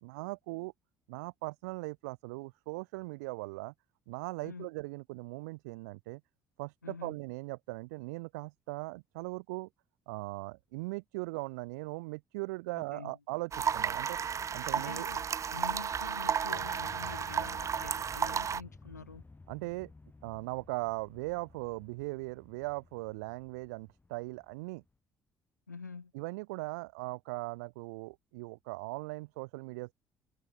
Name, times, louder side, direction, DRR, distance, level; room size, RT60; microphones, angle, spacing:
voice 1, 0.0-0.7 1.1-3.7 4.1-6.2 6.6-9.7 10.1-14.2 14.5-15.1 19.5-19.9 20.2-24.8 26.1-29.9, right 25 dB, 70° right, 1.1 m, -39 dB
voice 2, 6.8-7.2 12.7-13.2 14.7-19.2 25.7-26.1, left 4 dB, 85° left, 2.0 m, -46 dB
sound 1, 13.5-18.6, right 7 dB, 35° right, 0.6 m, -33 dB
sound 2, 16.5-24.9, left 3 dB, 20° left, 4.0 m, -55 dB
figure-of-eight pair, 50°, 9 cm